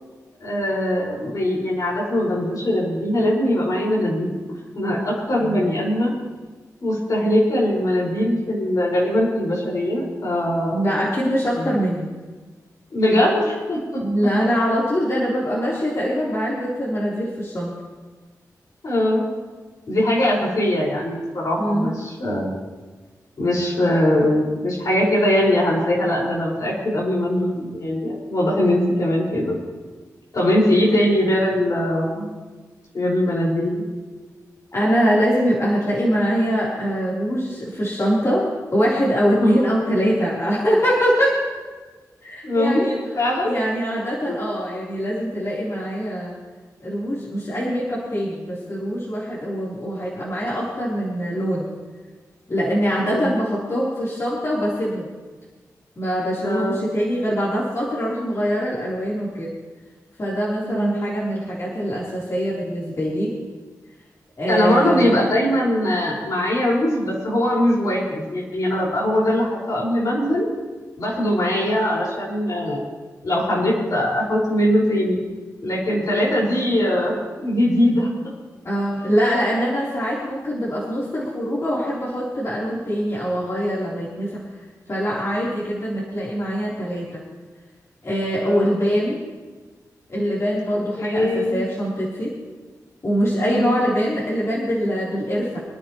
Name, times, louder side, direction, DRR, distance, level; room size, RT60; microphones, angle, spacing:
voice 1, 0.4-4.4 4.8-6.1 6.8-10.8 11.5-11.8 12.9-14.0 18.8-19.3 19.9-22.6 23.4-29.6 30.3-32.3 32.9-33.8 39.4-39.8 42.4-43.6 44.3-44.4 53.0-53.3 56.4-56.9 60.6-61.1 64.5-70.5 71.0-72.9 73.2-75.2 75.6-77.1 77.4-78.1 88.5-88.7 91.0-91.6 93.4-93.8, left 1 dB, 65° left, -5 dB, 5.4 m, -21 dB
voice 2, 5.4-5.7 10.7-12.1 14.0-17.7 21.6-21.9 34.7-41.4 42.2-42.9 43.4-46.4 46.8-51.7 52.5-55.1 56.0-59.5 60.2-63.3 64.4-65.2 78.6-84.4 84.9-87.2 88.0-89.2 90.1-92.3 93.0-95.6, equal, 45° left, -7 dB, 3.8 m, -23 dB
26.0 x 10.0 x 3.1 m, 1.3 s
cardioid pair, 55°, 7 cm